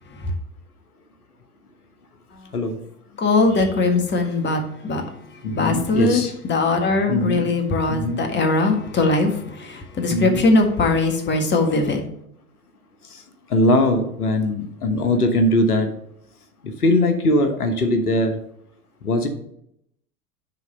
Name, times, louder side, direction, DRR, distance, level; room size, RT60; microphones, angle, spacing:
voice 1, 3.2-5.0 5.5-12.1, left 3 dB, 25° left, 4 dB, 1.7 m, -20 dB
voice 2, 5.4-6.3 7.1-7.5 7.9-8.2 10.1-10.4 13.5-15.9 16.6-18.3 19.0-19.3, left 1 dB, 85° left, 6 dB, 1.2 m, -20 dB
9.8 x 3.9 x 5.4 m, 0.73 s
hypercardioid pair, 90°, 44 cm